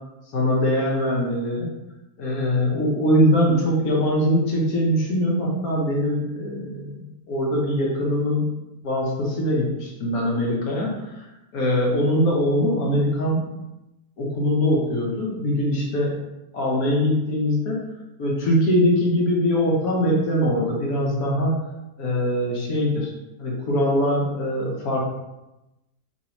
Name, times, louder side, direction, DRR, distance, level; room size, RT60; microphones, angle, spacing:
voice 1, 0.3-1.7 2.2-7.0 7.3-8.5 8.8-11.2 11.5-13.5 14.2-16.1 16.5-17.8 18.2-21.6 22.0-23.1 23.4-25.0, equal, 65° left, -3 dB, 1.2 m, -22 dB
3.1 x 2.8 x 2.8 m, 0.96 s
omnidirectional pair, 1.7 m